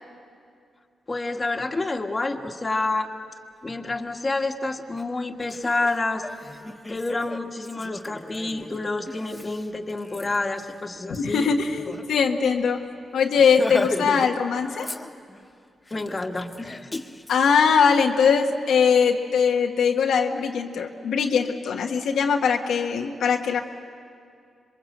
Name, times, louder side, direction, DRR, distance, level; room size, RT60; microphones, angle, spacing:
voice 1, 1.1-3.1 3.6-6.2 6.9-11.5 15.9-17.0, left 2 dB, 30° left, 3 dB, 1.7 m, -28 dB
Laughter, 5.0-5.1 5.4-12.0 12.4-12.5 12.8-13.0 13.4-14.3 14.6-15.4 15.9-17.3, left 2 dB, 15° left, 1.5 m, -37 dB
voice 2, 11.1-12.8 13.1-14.9 17.3-23.6, left 6 dB, 85° left, 2 dB, 1.3 m, -21 dB
27.0 x 22.5 x 7.9 m, 2.4 s
cardioid pair, 65°, 0 cm